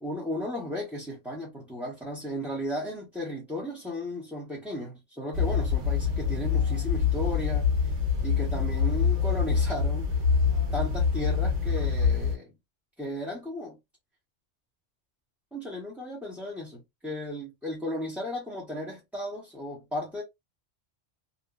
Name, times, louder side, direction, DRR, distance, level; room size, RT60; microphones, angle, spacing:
voice 1, 0.0-7.7 8.2-10.1 10.7-12.5 13.0-13.8 15.5-20.2, left 1 dB, ahead, 0.6 m, -35 dB
sound 1, 5.3-12.4, left 6 dB, 80° right, 1.2 m, -25 dB
2.7 x 2.0 x 2.3 m
omnidirectional pair, 1.2 m